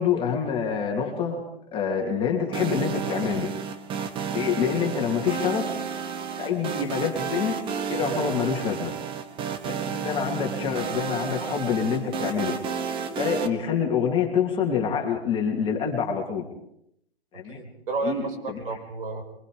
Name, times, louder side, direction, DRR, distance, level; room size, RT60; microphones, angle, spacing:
voice 1, 0.0-1.4 1.7-3.5 4.3-5.7 6.4-7.5 7.9-8.9 9.6-12.5 13.1-16.4 17.3-17.6 18.0-18.6, left 7 dB, 15° left, 1 dB, 3.1 m, -26 dB
sound 1, 2.5-13.5, right 6 dB, 15° right, 1.2 m, -31 dB
voice 2, 17.5-19.2, right 3 dB, 60° right, 3 dB, 5.6 m, -32 dB
23.5 x 22.0 x 5.2 m, 0.74 s
hypercardioid pair, 135°, 31 cm